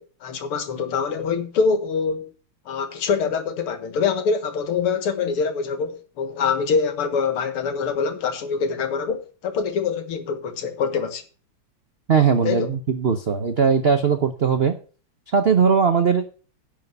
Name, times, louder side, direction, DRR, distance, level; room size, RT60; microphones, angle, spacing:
voice 1, 0.0-2.3 2.7-11.2 12.4-12.7, left 5 dB, 85° left, 2.4 m, -24 dB
voice 2, 12.1-14.7 15.3-16.2, right 6 dB, 85° right, 0.5 m, -19 dB
11.0 x 5.1 x 7.8 m
omnidirectional pair, 2.4 m